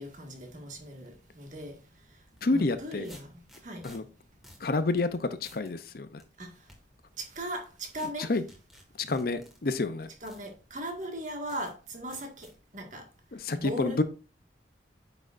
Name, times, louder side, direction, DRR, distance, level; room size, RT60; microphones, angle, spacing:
voice 1, 0.0-1.8 2.5-3.3 3.6-3.9 6.4-6.5 7.2-8.3 10.2-12.5 12.7-13.0 13.6-14.0, equal, 40° right, 1.8 m, -38 dB
sound 1, 2.3-2.4 3.0-4.0 4.4-4.7 5.0-5.1 5.4-5.7 6.2-6.8 7.9-8.1 8.5-9.6 10.3-10.4 11.0-11.1 11.5-11.7 12.1-12.5, equal, ahead, 1.7 m, -53 dB
voice 2, 2.4-3.1 3.8-4.0 4.6-6.2 8.3-8.4 9.0-10.1 13.3-14.0, left 3 dB, 50° left, 0.6 m, -29 dB
8.7 x 6.2 x 2.5 m
head